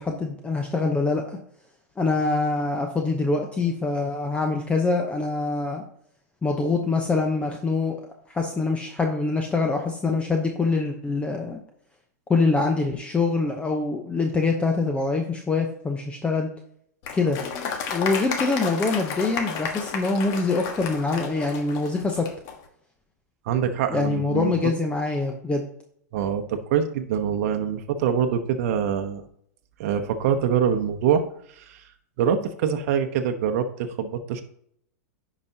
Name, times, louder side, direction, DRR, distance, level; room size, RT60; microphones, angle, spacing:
voice 1, 0.0-1.4 2.0-5.8 6.4-11.6 12.3-16.5 17.1-17.4 17.9-22.3 23.9-25.6, left 3 dB, 15° left, 3 dB, 0.8 m, -24 dB
Applause, 17.0-22.6, left 6 dB, 45° left, 1.4 m, -32 dB
voice 2, 23.4-24.5 26.1-29.2 29.8-31.2 31.6-31.8 32.2-34.4, right 8 dB, 60° right, 6 dB, 0.9 m, -24 dB
10.5 x 5.0 x 2.8 m, 0.66 s
hypercardioid pair, 115°, 9 cm